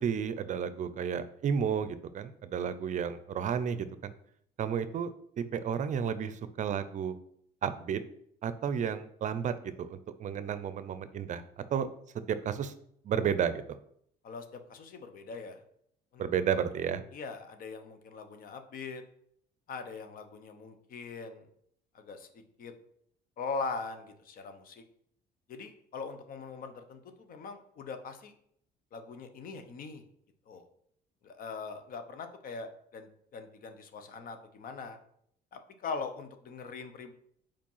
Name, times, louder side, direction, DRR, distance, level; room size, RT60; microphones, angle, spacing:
voice 1, 0.0-4.1 4.6-5.1 5.5-7.1 7.6-8.0 8.4-11.4 11.7-11.9 12.3-12.7 13.0-13.6 16.2-17.0, right 7 dB, 45° right, 12 dB, 0.5 m, -32 dB
voice 2, 14.2-15.6 16.1-16.3 17.1-19.0 19.7-21.5 21.9-22.3 22.6-22.7 23.4-24.8 25.5-28.3 28.9-30.0 30.5-30.7 31.2-35.0 35.5-37.1, left 4 dB, 55° left, 8 dB, 1.0 m, -41 dB
5.1 x 4.4 x 5.6 m, 0.68 s
cardioid pair, 110°, 17 cm